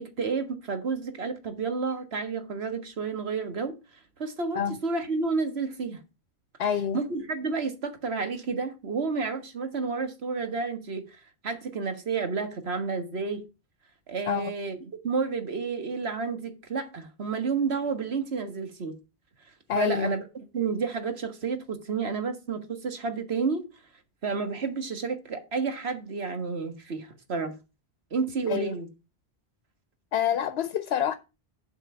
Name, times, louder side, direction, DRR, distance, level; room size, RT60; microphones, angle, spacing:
voice 1, 0.0-3.8 4.2-6.0 6.9-11.0 11.4-13.4 14.1-14.8 15.0-19.0 19.7-20.2 20.5-23.6 24.2-27.5 28.1-28.9, right 4 dB, 80° right, 1.7 m, -30 dB
voice 2, 6.6-7.0 14.3-14.5 19.7-20.1 28.5-28.7 30.1-31.1, left 9 dB, 80° left, 0.9 m, -27 dB
8.0 x 4.5 x 6.9 m
omnidirectional pair, 1.1 m